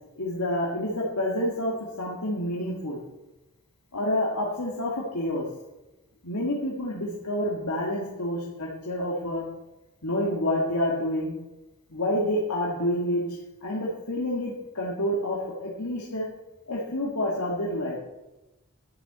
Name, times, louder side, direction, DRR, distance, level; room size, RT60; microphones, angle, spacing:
voice 1, 0.2-3.0 3.9-5.5 6.2-9.4 10.0-11.3 11.9-16.3 16.7-18.0, left 1 dB, 85° left, -4 dB, 2.3 m, -28 dB
12.5 x 7.2 x 8.1 m, 1.0 s
head